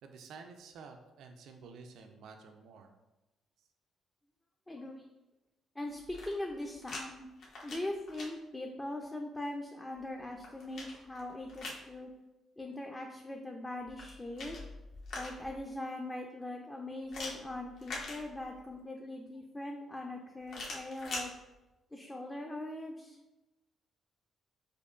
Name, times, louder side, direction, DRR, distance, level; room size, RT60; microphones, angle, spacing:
voice 1, 0.0-2.9, right 4 dB, 75° right, 5 dB, 0.3 m, -51 dB
voice 2, 4.7-5.0 5.8-7.3 7.6-12.1 12.6-14.6 15.1-21.3 21.9-23.2, left 1 dB, 15° left, 2 dB, 0.4 m, -41 dB
sound 1, 6.0-7.0 7.4-8.3 10.0-11.9 13.8-15.6 17.1-18.7 20.5-21.3, left 2 dB, 70° left, 0.9 m, -43 dB
5.1 x 2.1 x 2.4 m, 1.0 s
cardioid pair, 90°, 0 cm